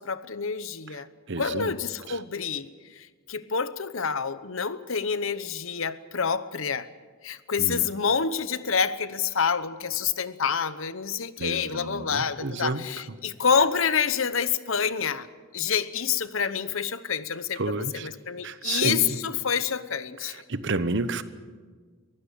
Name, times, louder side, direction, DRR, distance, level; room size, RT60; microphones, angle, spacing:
voice 1, 0.0-1.1 1.4-2.7 3.0-6.9 7.2-15.3 15.5-17.7 18.0-20.4, left 6 dB, 65° left, 1.0 m, -27 dB
voice 2, 0.9-1.7 2.1-2.2 7.6-7.8 11.4-13.2 17.6-18.1 18.4-19.2 20.2-21.2, right 3 dB, 60° right, 1.1 m, -31 dB
23.0 x 16.0 x 8.4 m
head